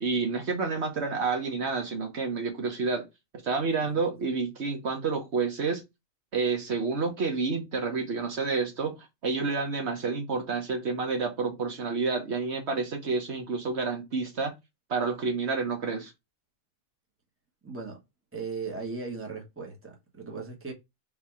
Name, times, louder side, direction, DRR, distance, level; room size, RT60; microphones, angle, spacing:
voice 1, 0.0-3.0 3.4-5.8 6.3-9.0 9.2-14.5 14.9-16.1, right 4 dB, 65° right, 1.3 m, -29 dB
voice 2, 17.6-18.0 18.3-20.7, right 4 dB, 10° right, 1.2 m, -37 dB
3.8 x 2.8 x 4.7 m
omnidirectional pair, 1.2 m